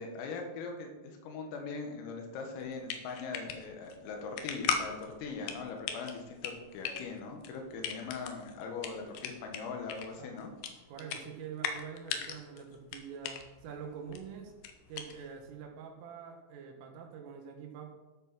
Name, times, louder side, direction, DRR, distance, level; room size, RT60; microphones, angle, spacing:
voice 1, 0.0-10.5, left 4 dB, 90° left, 2 dB, 4.3 m, -41 dB
sound 1, 2.6-15.5, left 7 dB, 70° left, 2.9 m, -40 dB
voice 2, 10.2-10.6 10.9-14.5 14.9-17.9, right 7 dB, 80° right, 3 dB, 3.9 m, -45 dB
12.5 x 7.0 x 6.2 m, 1.2 s
omnidirectional pair, 5.8 m